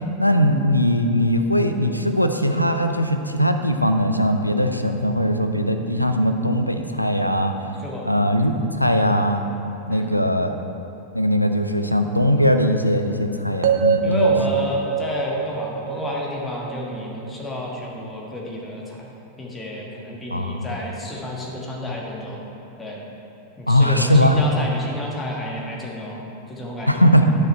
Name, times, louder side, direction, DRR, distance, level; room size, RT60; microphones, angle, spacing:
voice 1, 0.2-7.5 8.0-8.5 8.8-9.4 9.9-10.6 11.1-14.3 20.3-20.8 23.7-24.5 26.9-27.3, equal, 90° left, 6 dB, 0.5 m, -20 dB
sound 1, 13.6-17.7, right 6 dB, 55° right, 0.6 m, -24 dB
voice 2, 14.0-22.4 22.8-23.0 23.6-26.2 26.5-27.0, left 1 dB, 15° left, -3 dB, 1.6 m, -31 dB
9.9 x 6.4 x 4.3 m, 2.9 s
figure-of-eight pair, 90°, 0 cm